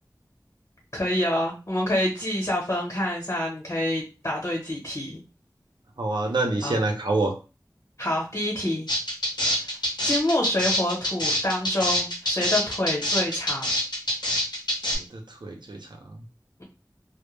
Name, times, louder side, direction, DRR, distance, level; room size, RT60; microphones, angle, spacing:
voice 1, 0.9-5.2 6.6-6.8 8.0-8.9 10.0-13.7, left 1 dB, 50° left, -2 dB, 1.0 m, -27 dB
voice 2, 6.0-7.3 15.1-15.8 16.1-16.2, right 2 dB, 85° right, 2 dB, 0.6 m, -26 dB
sound 1, 8.9-15.0, equal, 75° left, 0.8 m, -25 dB
2.2 x 2.1 x 3.1 m, 0.32 s
wide cardioid pair, 40°, 7 cm